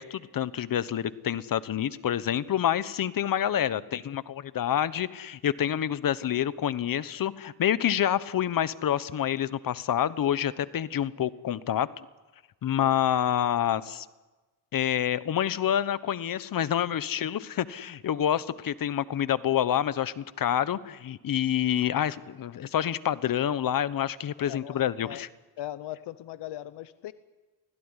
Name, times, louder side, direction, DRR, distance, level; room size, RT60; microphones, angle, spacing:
voice 1, 0.0-12.1 12.6-14.1 14.7-25.3, left 10 dB, 55° left, 16 dB, 1.1 m, -27 dB
voice 2, 24.4-25.2 25.6-27.1, left 13 dB, 85° left, 13 dB, 0.9 m, -40 dB
25.0 x 16.5 x 9.8 m, 1.2 s
cardioid pair, 100°, 40 cm